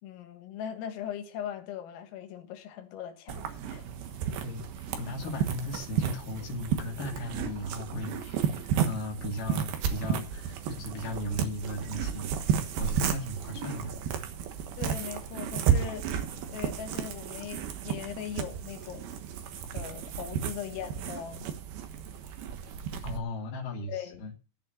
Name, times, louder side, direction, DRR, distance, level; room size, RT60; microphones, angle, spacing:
voice 1, 0.0-3.8 14.8-16.1 16.5-19.1 19.7-21.5 23.8-24.4, left 9 dB, 80° left, 4.1 m, -40 dB
sound 1, 3.3-23.2, right 8 dB, 70° right, 2.5 m, -33 dB
voice 2, 4.4-13.9 23.0-24.3, left 1 dB, 50° left, 3.2 m, -37 dB
14.0 x 5.5 x 7.8 m
omnidirectional pair, 6.0 m